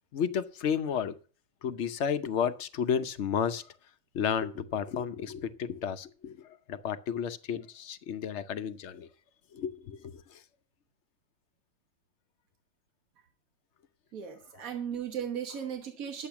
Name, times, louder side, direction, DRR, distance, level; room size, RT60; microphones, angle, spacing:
voice 1, 0.1-1.2 1.6-3.7 4.1-9.1 9.5-10.4 14.6-14.7, left 7 dB, 60° left, 1.0 m, -32 dB
voice 2, 14.1-16.3, right 8 dB, 80° right, 1.6 m, -36 dB
10.5 x 7.8 x 5.8 m
omnidirectional pair, 1.4 m